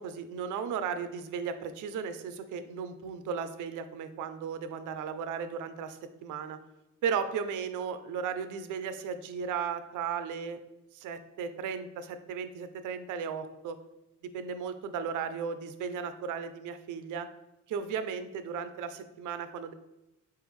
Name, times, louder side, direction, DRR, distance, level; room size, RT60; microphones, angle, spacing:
voice 1, 0.0-6.6 7.0-10.6 10.9-13.8 14.2-17.3 17.7-19.7, right 6 dB, 90° right, 10 dB, 0.5 m, -35 dB
4.4 x 3.5 x 3.1 m, 0.93 s
cardioid pair, 155°, 30 cm